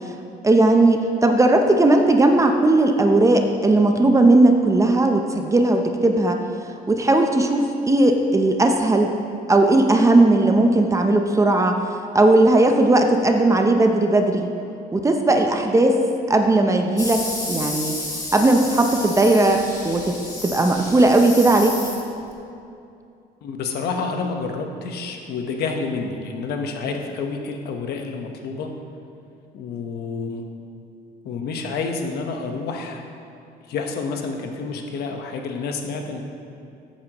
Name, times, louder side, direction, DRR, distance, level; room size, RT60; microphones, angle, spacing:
voice 1, 0.4-6.4 6.9-9.1 9.5-11.8 12.1-14.5 14.9-16.0 16.3-17.2 17.5-17.9 18.3-21.8, right 2 dB, 20° right, 4 dB, 0.7 m, -17 dB
sound 1, 17.0-22.3, left 2 dB, 20° left, 2.0 m, -32 dB
voice 2, 23.4-28.7 29.5-30.4 31.2-33.0 33.7-36.2, left 4 dB, 70° left, 3 dB, 1.2 m, -29 dB
14.0 x 8.6 x 3.1 m, 2.6 s
cardioid pair, 110°, 17 cm